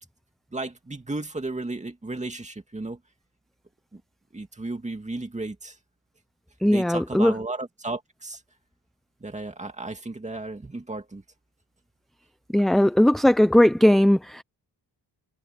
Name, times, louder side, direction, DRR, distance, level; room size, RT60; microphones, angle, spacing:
voice 1, 0.5-3.0 3.9-4.0 4.3-5.8 6.6-8.4 9.2-11.2, right 2 dB, 15° right, 2.2 m, -34 dB
voice 2, 6.6-7.3 12.5-14.4, left 1 dB, ahead, 0.4 m, -18 dB
wide cardioid pair, 175°, 44 cm